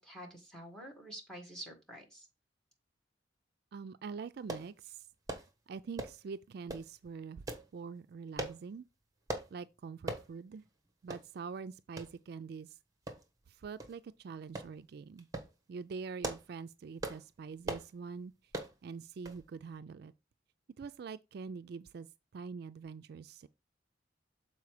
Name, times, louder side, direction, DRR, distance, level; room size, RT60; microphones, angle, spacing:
voice 1, 0.0-2.3, right 1 dB, 5° left, 1.9 m, -48 dB
voice 2, 3.7-5.1 5.7-7.4 7.7-8.8 9.5-10.6 11.0-12.8 13.5-15.3 15.7-18.3 18.8-20.1 20.8-22.1 22.3-23.5, right 5 dB, 55° right, 0.3 m, -44 dB
sound 1, 4.5-4.7 5.3-5.5 6.0-6.2 6.7-6.9 7.5-7.7 8.4-8.6 9.3-9.5 10.1-10.3 10.7-10.8 11.1-11.3 12.0-12.1 13.1-13.4 13.8-13.9 14.6-14.7 15.2-15.5 16.0-16.5 17.0-17.2 17.6-17.9 18.5-18.7 19.3-19.4 19.7-19.8, right 2 dB, 20° right, 1.2 m, -39 dB
7.0 x 4.3 x 4.8 m
head